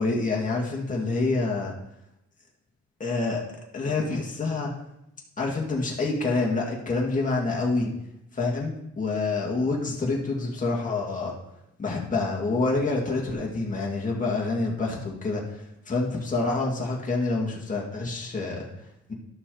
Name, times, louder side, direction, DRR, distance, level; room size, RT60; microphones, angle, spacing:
voice 1, 0.0-1.7 3.0-3.4 3.7-4.7 5.4-7.9 8.3-11.3 11.8-18.7 19.1-19.2, left 3 dB, 25° left, -2 dB, 2.1 m, -27 dB
12.5 x 6.0 x 3.9 m, 0.82 s
cardioid pair, 90°, 30 cm